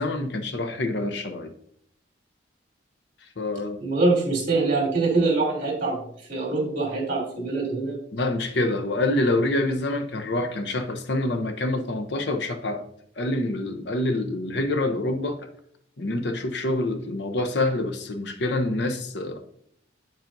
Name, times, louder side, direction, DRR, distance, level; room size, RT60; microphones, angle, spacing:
voice 1, 0.0-1.5 3.4-3.8 8.1-12.8 13.2-15.4 16.0-19.4, left 2 dB, 65° left, 7 dB, 0.7 m, -26 dB
voice 2, 3.8-6.0 6.3-8.0, right 3 dB, 40° right, -3 dB, 3.0 m, -24 dB
9.0 x 7.3 x 2.6 m, 0.67 s
head